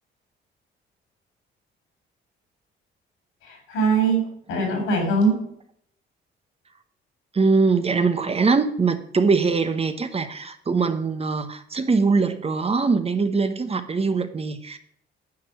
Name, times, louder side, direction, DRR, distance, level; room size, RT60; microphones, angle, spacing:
voice 1, 3.4-5.4, right 3 dB, 90° left, 2 dB, 4.0 m, -22 dB
voice 2, 7.3-14.8, right 4 dB, 30° right, 10 dB, 0.9 m, -22 dB
9.6 x 4.5 x 6.8 m, 0.68 s
cardioid pair, 90°, 20 cm